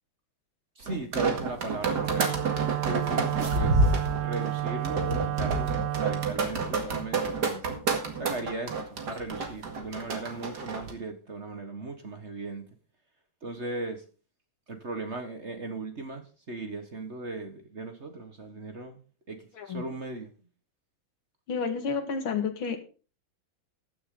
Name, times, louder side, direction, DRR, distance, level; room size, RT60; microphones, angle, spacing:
voice 1, 0.7-2.3 2.6-7.6 8.1-12.6 13.4-14.0 14.7-19.0 19.3-20.3, right 2 dB, 35° right, 1.6 m, -37 dB
sound 1, 0.9-10.9, right 3 dB, 55° right, 2.5 m, -29 dB
Wind instrument woodwind instrument, 1.9-6.4, right 14 dB, 80° right, 1.5 m, -31 dB
voice 2, 21.5-22.8, left 5 dB, 75° left, 2.5 m, -30 dB
14.0 x 10.0 x 3.8 m
omnidirectional pair, 2.2 m